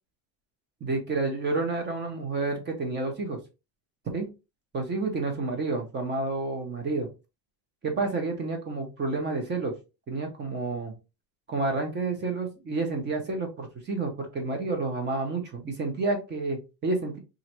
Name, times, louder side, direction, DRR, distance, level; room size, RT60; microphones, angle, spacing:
voice 1, 0.8-3.4 4.1-4.3 4.7-7.1 7.8-9.7 10.1-10.9 11.5-17.2, right 3 dB, 25° right, 4 dB, 0.6 m, -30 dB
3.1 x 2.5 x 2.8 m, 0.27 s
cardioid pair, 180°, 48 cm